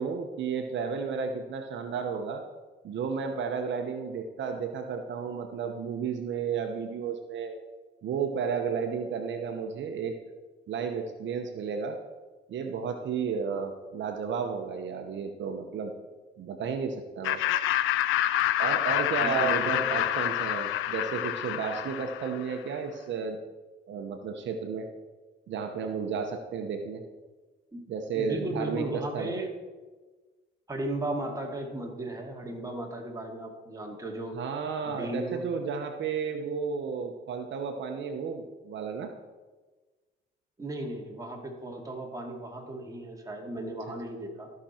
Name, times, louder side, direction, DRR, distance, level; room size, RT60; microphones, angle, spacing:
voice 1, 0.0-2.4 2.8-7.5 8.0-10.1 10.7-12.0 12.5-15.9 16.4-17.4 18.6-23.4 23.9-24.9 25.5-27.0 27.9-29.3 34.3-39.1, right 6 dB, 70° right, 5 dB, 0.9 m, -32 dB
Laughter, 17.2-22.5, left 13 dB, 90° left, 0.5 m, -27 dB
voice 2, 19.2-20.0 27.7-27.8 28.1-29.5 30.7-34.4 34.8-35.5 40.6-44.5, right 1 dB, 15° right, 0 dB, 2.3 m, -36 dB
14.5 x 6.0 x 4.4 m, 1.3 s
cardioid pair, 90°, 20 cm